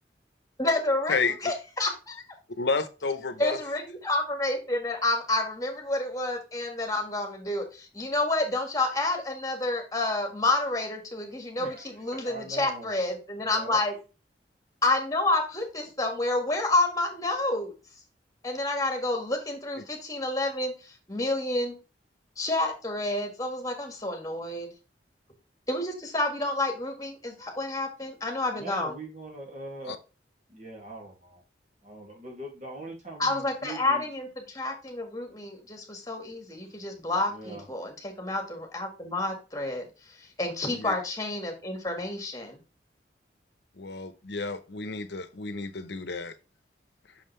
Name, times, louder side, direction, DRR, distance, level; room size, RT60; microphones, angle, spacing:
voice 1, 0.6-2.2 3.4-13.9 14.8-17.7 18.4-21.8 22.4-24.7 25.7-29.0 33.2-39.9 40.2-42.6, left 2 dB, 20° left, 3 dB, 1.7 m, -29 dB
voice 2, 2.5-3.6 29.9-30.0 40.7-40.9 43.8-46.3, left 4 dB, 70° left, 10 dB, 0.9 m, -31 dB
voice 3, 12.1-12.9 13.4-13.8 28.5-30.0 30.5-31.4 31.8-34.1 37.3-37.7, right 2 dB, 40° right, 0 dB, 2.3 m, -41 dB
6.3 x 5.5 x 3.3 m, 0.30 s
head